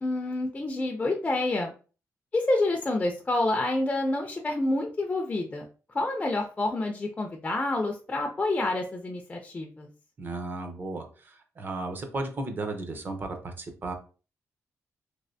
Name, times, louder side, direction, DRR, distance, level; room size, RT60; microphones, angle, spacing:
voice 1, 0.0-1.7 2.3-5.7 5.9-9.9, left 2 dB, 20° left, 2 dB, 0.4 m, -28 dB
voice 2, 10.2-13.9, right 2 dB, 35° right, 5 dB, 0.6 m, -35 dB
3.2 x 3.0 x 2.6 m, 0.37 s
wide cardioid pair, 150°, 6 cm